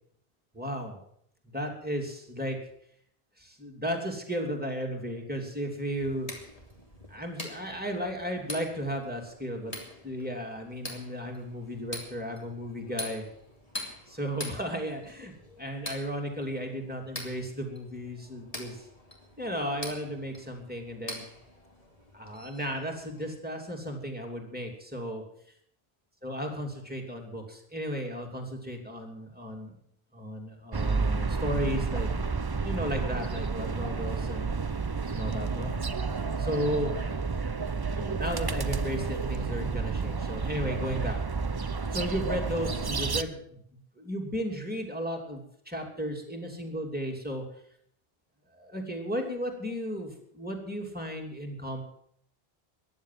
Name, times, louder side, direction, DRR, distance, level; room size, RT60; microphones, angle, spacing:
voice 1, 0.5-1.0 1.5-2.6 3.4-6.3 7.1-9.7 10.0-13.3 14.1-18.9 19.4-21.2 22.1-25.2 26.2-29.7 30.1-32.1 32.6-34.6 35.1-36.9 37.9-41.2 41.9-47.4 48.5-51.8, equal, 10° right, 1 dB, 2.9 m, -34 dB
sound 1, 5.9-23.4, left 1 dB, 35° left, 2.8 m, -45 dB
sound 2, 30.7-43.2, right 4 dB, 30° right, 0.6 m, -30 dB
14.5 x 11.0 x 7.6 m, 0.69 s
omnidirectional pair, 1.0 m